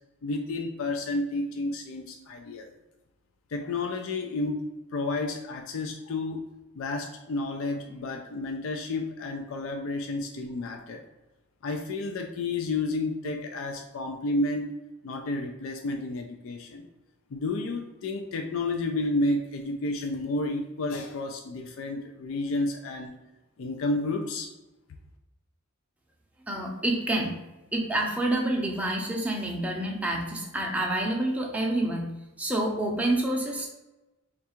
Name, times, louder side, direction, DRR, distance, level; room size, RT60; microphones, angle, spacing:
voice 1, 0.2-2.7 3.5-4.6 4.9-6.4 6.8-11.0 11.6-14.7 15.0-16.9 17.3-23.2 23.6-24.5, left 2 dB, 65° left, 3 dB, 0.4 m, -31 dB
voice 2, 26.5-27.4 27.7-32.1 32.4-33.7, right 1 dB, 5° right, -1 dB, 0.6 m, -28 dB
3.5 x 2.4 x 4.3 m, 1.0 s
head